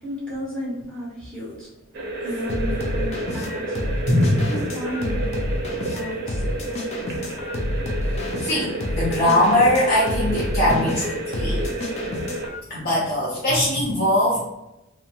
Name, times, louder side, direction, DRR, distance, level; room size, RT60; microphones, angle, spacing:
voice 1, 0.0-1.7 2.2-3.8 4.5-5.3 5.9-6.6, equal, 5° left, -9 dB, 0.8 m, -33 dB
sound 1, 1.9-12.5, right 2 dB, 50° right, 0.6 m, -31 dB
sound 2, 2.5-12.6, left 1 dB, 30° left, 0.3 m, -29 dB
voice 2, 4.1-4.4 8.4-11.6 12.7-14.4, left 1 dB, 50° left, -8 dB, 0.8 m, -21 dB
2.5 x 2.1 x 2.8 m, 0.94 s
head